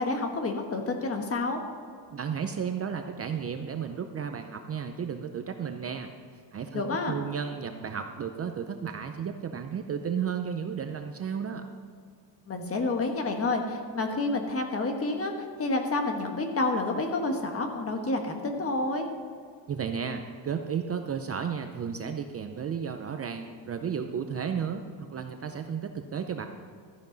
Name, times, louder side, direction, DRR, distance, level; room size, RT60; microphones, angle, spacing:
voice 1, 0.0-1.6 6.7-7.2 12.5-15.3 15.6-19.1, left 2 dB, 30° left, 4 dB, 1.4 m, -29 dB
voice 2, 2.1-6.1 6.5-11.6 19.7-26.5, right 7 dB, 35° right, 6 dB, 0.5 m, -33 dB
13.0 x 10.5 x 3.9 m, 2.1 s
cardioid pair, 155°, 44 cm